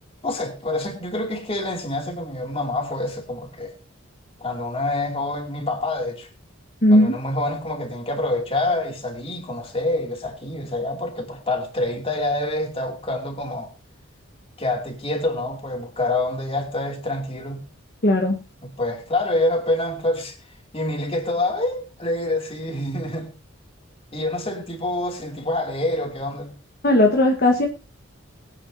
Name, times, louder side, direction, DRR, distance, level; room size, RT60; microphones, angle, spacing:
voice 1, 0.2-3.7 4.4-6.3 6.9-13.7 14.6-17.6 18.6-20.4 20.7-23.3 24.1-26.5, left 2 dB, 25° left, 2.7 m, -26 dB
voice 2, 6.8-7.1 18.0-18.4 26.8-27.7, left 1 dB, 45° left, 1.5 m, -16 dB
21.5 x 9.1 x 2.8 m
head